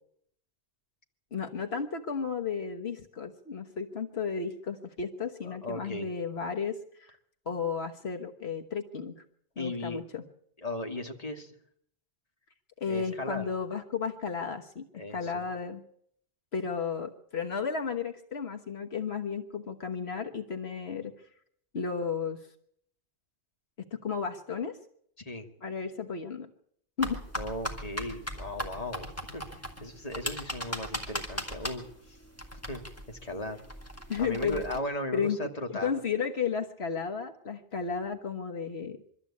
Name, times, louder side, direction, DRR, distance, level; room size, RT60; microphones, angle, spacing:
voice 1, 1.3-7.1 7.5-9.2 9.6-10.2 12.8-15.8 16.5-21.1 21.7-22.5 23.9-24.8 25.6-26.5 27.0-27.2 34.1-34.6 35.1-35.5 35.8-39.0, left 6 dB, 80° left, 5 dB, 1.6 m, -33 dB
voice 2, 5.4-6.1 9.6-10.0 10.6-11.5 12.8-13.5 15.0-15.4 25.2-25.5 27.3-32.2 32.7-33.6 34.2-35.9, left 1 dB, 35° left, 4 dB, 2.1 m, -37 dB
sound 1, 27.0-34.8, equal, 15° left, 2.5 m, -39 dB
24.0 x 13.5 x 8.5 m, 0.69 s
omnidirectional pair, 1.0 m